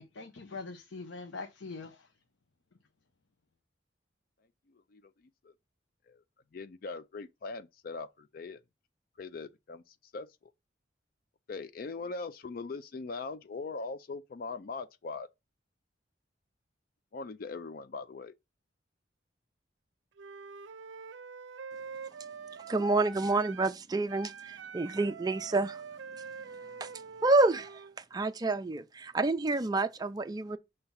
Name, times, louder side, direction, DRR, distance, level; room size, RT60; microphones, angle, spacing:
voice 1, 0.0-2.1, left 3 dB, 85° left, 0.7 m, -43 dB
voice 2, 4.7-5.5 6.1-6.2 6.5-8.6 9.2-10.5 11.5-15.3 17.1-18.3, left 4 dB, 50° left, 0.4 m, -41 dB
Wind instrument woodwind instrument, 20.2-23.8 24.1-28.0, right 6 dB, 80° right, 0.5 m, -45 dB
voice 3, 22.7-25.8 26.8-26.9 27.2-27.8 28.1-30.6, right 2 dB, 20° right, 0.4 m, -28 dB
5.8 x 3.3 x 5.5 m
head